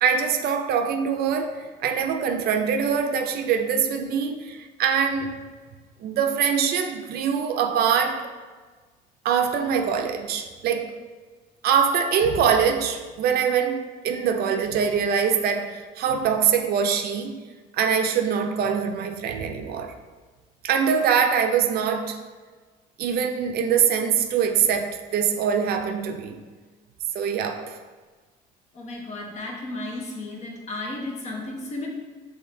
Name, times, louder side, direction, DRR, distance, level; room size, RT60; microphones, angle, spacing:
voice 1, 0.0-5.3 6.0-8.3 9.2-11.0 11.6-17.4 17.7-19.9 20.6-22.2 23.0-26.4 27.1-27.8, right 7 dB, 65° right, 0.5 m, -23 dB
voice 2, 28.7-31.9, left 2 dB, 40° left, 1.1 m, -34 dB
5.7 x 3.3 x 2.7 m
cardioid pair, 110°, 17 cm